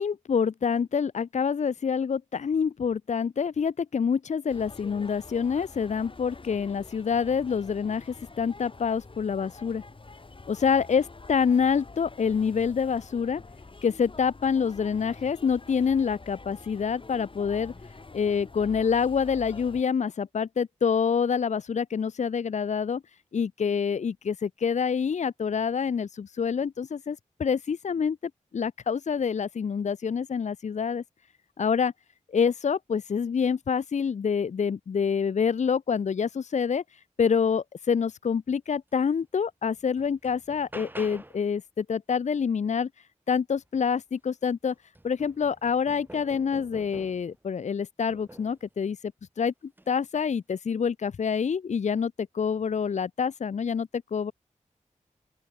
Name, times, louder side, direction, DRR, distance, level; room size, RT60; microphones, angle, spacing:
voice 1, 0.0-9.8 10.5-13.4 13.8-17.7 18.1-23.0 23.3-31.0 31.6-31.9 32.3-36.8 37.2-42.9 43.3-44.7 45.0-49.0 49.4-49.5 49.9-54.3, left 6 dB, 65° left, 0.6 m, -27 dB
sound 1, 4.5-19.8, left 3 dB, 40° left, 5.0 m, -46 dB
sound 2, 39.1-39.2 39.7-41.5 43.9-44.0 44.4-47.4 48.1-48.6 49.7-49.9, right 1 dB, 15° right, 2.2 m, -47 dB
open air
wide cardioid pair, 70°, 13 cm